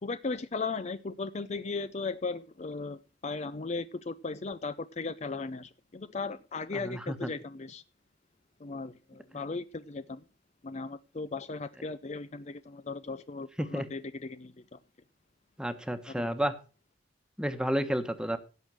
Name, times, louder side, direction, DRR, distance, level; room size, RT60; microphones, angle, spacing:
voice 1, 0.0-7.8 8.6-10.2 10.6-14.8 16.1-16.3, left 4 dB, 35° left, 0.5 m, -37 dB
voice 2, 6.7-7.3 13.6-13.9 15.6-16.5 17.4-18.4, equal, 5° right, 1.2 m, -31 dB
16.5 x 6.3 x 6.2 m
head